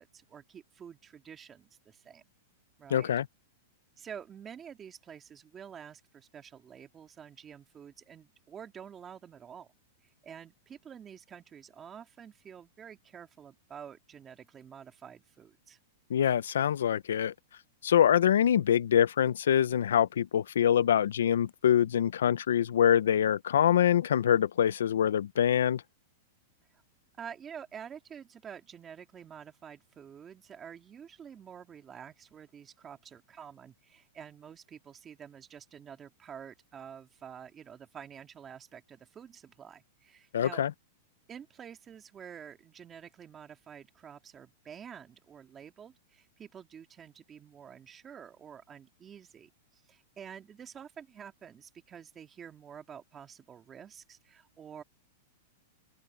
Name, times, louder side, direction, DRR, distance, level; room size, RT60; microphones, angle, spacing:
voice 1, 0.0-2.2 2.8-3.1 4.0-9.7 10.0-15.8 26.7-26.8 27.2-40.6 41.3-54.8, right 8 dB, 20° right, 2.2 m, -48 dB
voice 2, 2.9-3.3 16.1-17.3 17.8-25.8 40.3-40.7, left 9 dB, 90° left, 0.7 m, -25 dB
open air
supercardioid pair, 150°, 0 cm